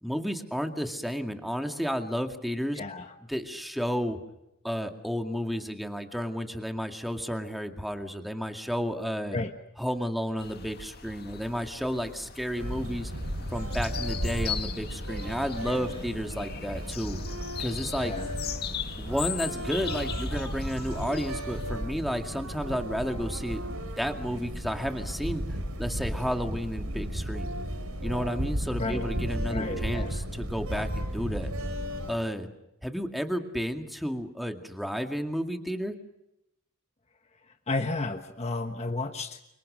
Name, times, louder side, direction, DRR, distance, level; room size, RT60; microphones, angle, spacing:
voice 1, 0.0-2.8 3.3-4.2 4.6-9.4 9.8-13.1 13.5-17.2 17.6-18.1 19.0-23.6 24.0-27.5 28.0-31.5 32.1-32.5 32.8-36.0, equal, ahead, 5 dB, 2.2 m, -32 dB
voice 2, 2.7-3.1 9.3-9.6 15.7-15.9 18.0-18.3 28.8-29.1 29.5-30.2 37.3-39.4, left 2 dB, 30° left, 6 dB, 1.3 m, -33 dB
sound 1, 10.4-21.7, left 8 dB, 50° left, 2.0 m, -40 dB
sound 2, 12.6-32.1, equal, 85° right, 4.6 m, -34 dB
29.5 x 25.5 x 6.4 m, 0.85 s
head